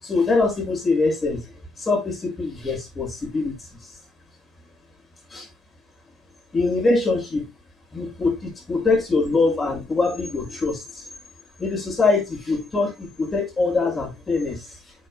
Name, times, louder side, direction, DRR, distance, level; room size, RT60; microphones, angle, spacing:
voice 1, 0.0-1.5 1.8-3.9 5.3-5.5 6.5-7.5 7.9-11.0 11.6-14.8, left 3 dB, 20° left, 6.1 m, -23 dB
9.3 x 7.9 x 2.3 m
figure-of-eight pair, 65°, 0 cm